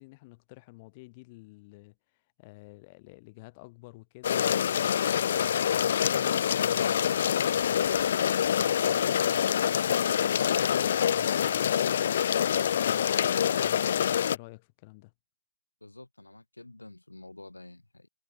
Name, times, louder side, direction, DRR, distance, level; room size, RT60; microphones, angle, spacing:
voice 1, 0.0-5.5 5.9-9.3 9.8-12.1 12.5-15.1, left 24 dB, 40° left, 5.6 m, -50 dB
sound 1, 4.2-14.4, left 9 dB, 60° left, 0.4 m, -26 dB
voice 2, 15.8-18.1, left 2 dB, 85° left, 2.3 m, -49 dB
figure-of-eight pair, 115°, 0 cm